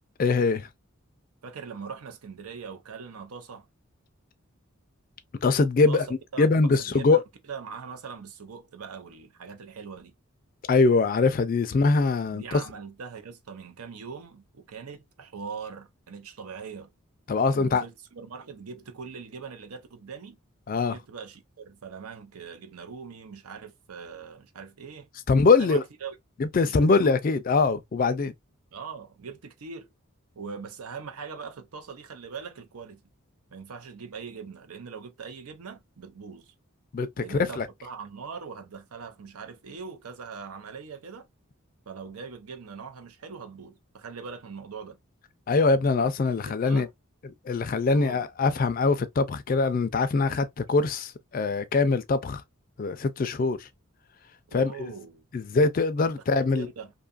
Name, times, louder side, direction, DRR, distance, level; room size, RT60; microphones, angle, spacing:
voice 1, 0.2-0.7 5.4-6.1 6.4-7.2 10.7-12.6 17.3-17.8 20.7-21.0 25.3-25.8 26.4-28.3 36.9-37.7 45.5-46.9 47.5-52.4 52.8-53.7 54.5-54.9 55.3-56.7, left 3 dB, 40° left, 0.3 m, -23 dB
voice 2, 1.4-3.7 5.9-6.1 6.3-10.1 12.3-16.9 17.5-20.4 20.9-25.1 25.6-26.2 26.6-27.1 28.7-29.9 30.4-33.0 33.5-36.5 37.2-41.3 41.9-45.0 46.6-46.9 47.9-48.2 54.5-55.3 56.5-56.9, right 5 dB, 90° right, 0.6 m, -41 dB
2.6 x 2.3 x 2.4 m
head